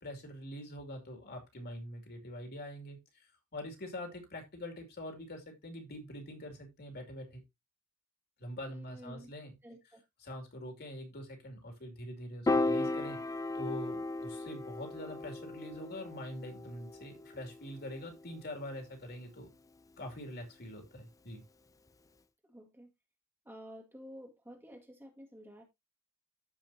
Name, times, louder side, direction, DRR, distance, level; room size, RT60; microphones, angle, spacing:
voice 1, 0.0-3.0 3.5-7.4 8.4-9.5 10.2-13.2 13.5-19.5 20.0-21.4, left 1 dB, 45° left, 2.7 m, -44 dB
voice 2, 8.7-9.3 9.6-10.0 22.4-22.9 23.5-25.6, equal, 10° right, 1.8 m, -51 dB
Piano, 12.5-18.8, left 2 dB, 15° left, 0.4 m, -36 dB
14.0 x 5.0 x 2.8 m
head